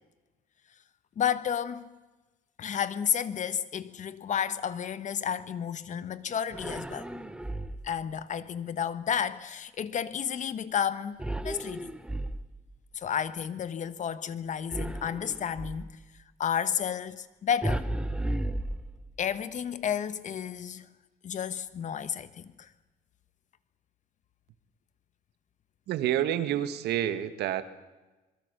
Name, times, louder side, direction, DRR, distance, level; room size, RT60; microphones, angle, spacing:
voice 1, 1.2-1.8 2.6-7.1 7.8-11.2 11.4-11.9 12.9-16.0 16.4-17.8 19.2-20.9 21.2-22.7, left 8 dB, 45° left, 1.4 m, -31 dB
sound 1, 6.5-8.0 11.2-12.8 14.7-15.9 17.6-19.3, right 1 dB, 5° right, 1.2 m, -34 dB
voice 2, 25.9-27.6, right 11 dB, 75° right, 1.7 m, -28 dB
25.5 x 22.5 x 6.9 m
cardioid pair, 110°, 17 cm